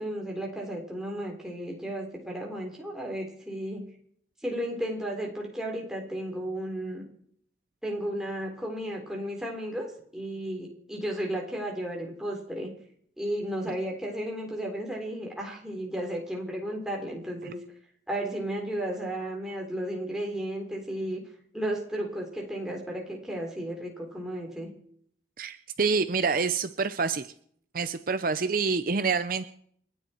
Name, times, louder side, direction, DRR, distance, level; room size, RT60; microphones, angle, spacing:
voice 1, 0.0-3.8 4.4-7.0 7.8-12.7 13.2-17.6 18.1-21.2 21.5-24.7, right 1 dB, 5° right, -1 dB, 3.8 m, -34 dB
voice 2, 25.4-27.3 27.7-29.4, right 4 dB, 50° right, 11 dB, 0.6 m, -27 dB
30.0 x 10.0 x 4.5 m, 0.63 s
head